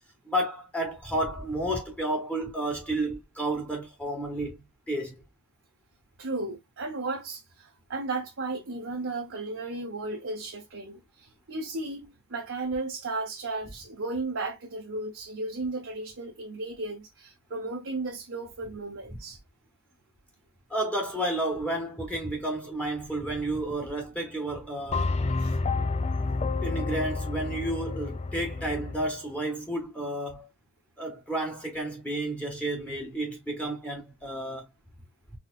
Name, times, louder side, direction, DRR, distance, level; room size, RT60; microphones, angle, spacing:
voice 1, 0.2-5.2 20.7-25.2 26.6-30.5 31.0-34.6, right 1 dB, 5° left, 1.3 m, -31 dB
voice 2, 6.2-19.4 25.4-25.6, right 2 dB, 55° right, 0.8 m, -35 dB
sound 1, 24.9-29.1, left 3 dB, 30° left, 0.5 m, -29 dB
4.2 x 3.6 x 2.4 m
head